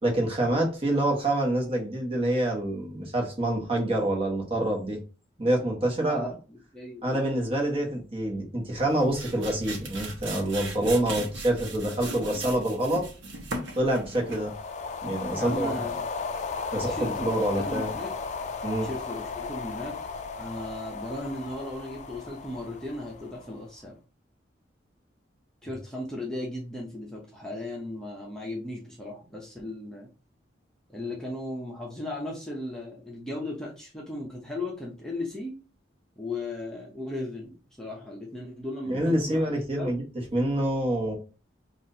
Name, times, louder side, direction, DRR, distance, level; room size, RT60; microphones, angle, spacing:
voice 1, 0.0-5.0 5.4-6.3 7.0-13.1 13.8-14.5 15.0-15.7 16.7-17.9 18.6-18.9 38.9-41.1, right 1 dB, 30° right, -1 dB, 1.3 m, -26 dB
voice 2, 6.0-7.2 15.4-16.0 16.9-18.1 18.8-20.0 20.4-24.0 25.6-30.1 30.9-35.5 36.2-39.5 39.8-40.0, left 1 dB, 5° left, -4 dB, 0.8 m, -36 dB
sound 1, 8.8-14.6, right 2 dB, 85° right, 1.0 m, -38 dB
sound 2, 14.2-23.7, left 4 dB, 40° left, 0.4 m, -35 dB
6.0 x 2.5 x 2.8 m, 0.34 s
head